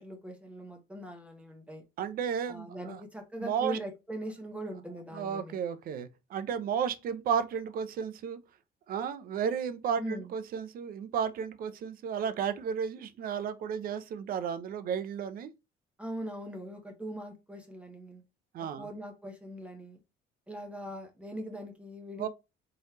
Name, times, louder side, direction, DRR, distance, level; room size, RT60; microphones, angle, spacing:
voice 1, 0.0-1.8 2.5-5.6 10.0-10.3 16.0-18.2 18.6-20.0 20.5-22.3, right 1 dB, 5° right, 1.0 m, -41 dB
voice 2, 2.0-3.0 3.4-3.8 5.1-8.4 8.9-15.5 18.5-18.9 22.2-22.3, right 7 dB, 60° right, 0.6 m, -33 dB
3.8 x 3.2 x 2.7 m
cardioid pair, 110°, 17 cm